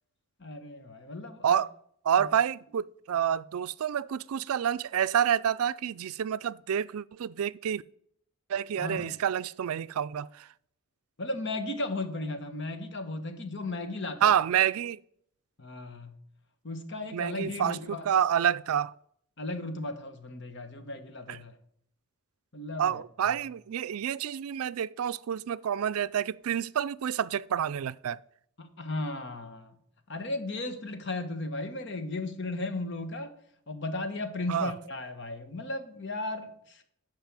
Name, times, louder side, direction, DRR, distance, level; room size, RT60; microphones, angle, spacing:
voice 1, 0.4-1.6 2.2-2.3 8.8-9.1 11.2-14.3 15.6-16.1 16.6-18.1 19.4-21.6 22.5-23.4 28.6-29.7 30.1-33.3 33.7-36.8, left 2 dB, 55° left, 1.3 m, -35 dB
voice 2, 2.0-7.8 8.5-10.5 14.2-15.0 17.1-18.9 21.3-21.4 22.8-28.2 34.5-34.7, right 9 dB, 80° right, 0.4 m, -28 dB
10.5 x 5.5 x 7.4 m
head